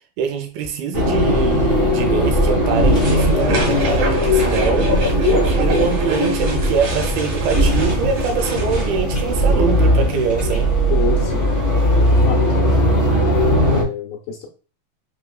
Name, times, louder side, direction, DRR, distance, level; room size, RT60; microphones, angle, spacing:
voice 1, 0.2-10.7, right 6 dB, 80° right, 2.4 m, -24 dB
sound 1, 0.9-13.8, equal, 40° left, 0.7 m, -18 dB
sound 2, 2.9-8.9, right 1 dB, 60° right, 2.3 m, -27 dB
voice 2, 10.9-11.5 12.2-12.5 13.7-14.5, left 8 dB, 75° left, 2.3 m, -27 dB
5.4 x 3.4 x 2.3 m
omnidirectional pair, 4.5 m